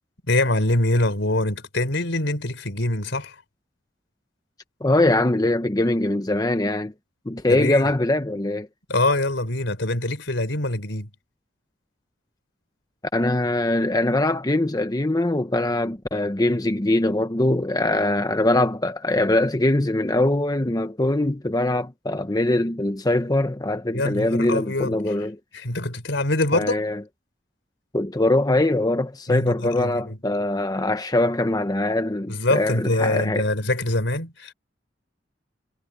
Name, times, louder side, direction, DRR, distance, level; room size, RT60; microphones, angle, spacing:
voice 1, 0.3-3.3 7.5-7.9 8.9-11.1 23.9-25.0 25.5-26.8 29.3-30.2 32.3-34.5, left 2 dB, 75° left, 4.2 m, -24 dB
voice 2, 4.8-6.9 7.3-8.7 13.1-25.4 26.5-27.0 27.9-33.5, left 1 dB, 20° left, 0.9 m, -22 dB
head